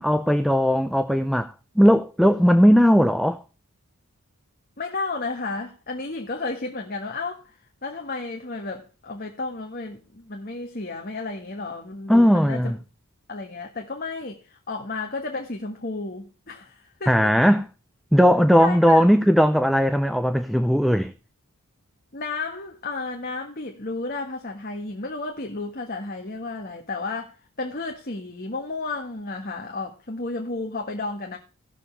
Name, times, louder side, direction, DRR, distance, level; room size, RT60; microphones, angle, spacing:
voice 1, 0.0-3.4 12.1-12.8 17.1-17.7 18.1-21.1, equal, ahead, 0.5 m, -18 dB
voice 2, 4.8-12.7 13.3-17.3 18.6-19.1 22.1-31.4, left 3 dB, 40° left, 1.5 m, -32 dB
17.5 x 6.9 x 3.3 m
head